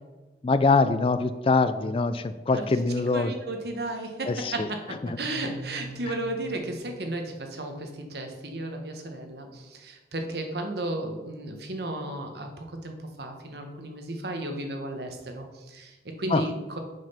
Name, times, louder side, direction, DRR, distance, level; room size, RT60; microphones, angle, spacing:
voice 1, 0.4-3.3 4.3-4.7 5.0-5.2 16.3-16.4, left 3 dB, 30° left, 12 dB, 0.4 m, -23 dB
voice 2, 3.1-16.8, right 1 dB, 65° right, 4 dB, 1.2 m, -34 dB
sound 1, 5.1-7.9, right 1 dB, 80° right, 2.1 m, -43 dB
7.4 x 5.5 x 5.7 m, 1.2 s
head